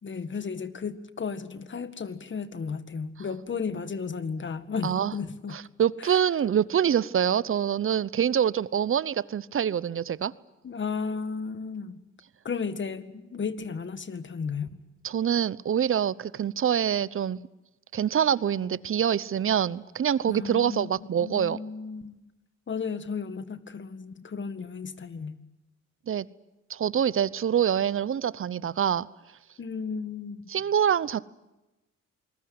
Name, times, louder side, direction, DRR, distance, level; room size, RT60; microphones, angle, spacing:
voice 1, 0.0-5.6 6.0-6.2 10.6-12.0 12.4-14.7 20.2-22.2 22.7-25.4 29.6-30.4, left 5 dB, 40° left, 1.9 m, -34 dB
voice 2, 5.8-10.3 15.0-17.4 17.9-21.6 26.1-26.3 26.7-29.1 30.5-31.2, right 9 dB, 45° right, 0.8 m, -25 dB
27.5 x 20.5 x 9.6 m
cardioid pair, 90°, 30 cm